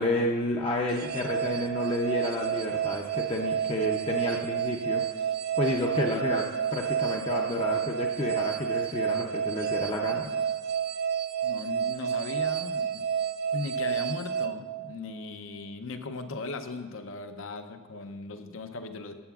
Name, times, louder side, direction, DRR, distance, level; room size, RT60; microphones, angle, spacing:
voice 1, 0.0-5.3 5.6-10.3, left 1 dB, 30° left, 0 dB, 0.5 m, -30 dB
sound 1, 0.9-15.3, right 8 dB, 50° right, 0.4 m, -30 dB
voice 2, 11.4-13.0 13.5-19.2, left 3 dB, 75° left, 8 dB, 0.6 m, -38 dB
14.0 x 8.1 x 2.4 m, 1.4 s
head